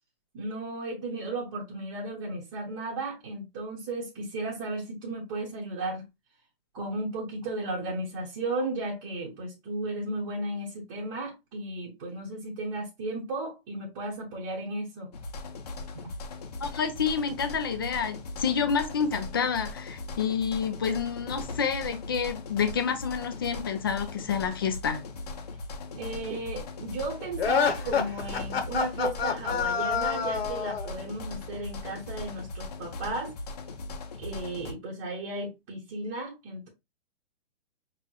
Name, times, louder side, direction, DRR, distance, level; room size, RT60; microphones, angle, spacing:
voice 1, 0.3-6.1 6.7-15.1 15.9-16.1 25.9-33.3 34.2-36.7, right 2 dB, 20° right, 0.9 m, -34 dB
sound 1, 15.1-34.7, left 3 dB, 40° left, 0.7 m, -39 dB
voice 2, 16.6-25.0, left 6 dB, 25° left, 0.4 m, -29 dB
sound 2, 27.4-30.9, left 6 dB, 75° left, 1.1 m, -27 dB
5.4 x 3.0 x 2.2 m
hypercardioid pair, 170°, 31 cm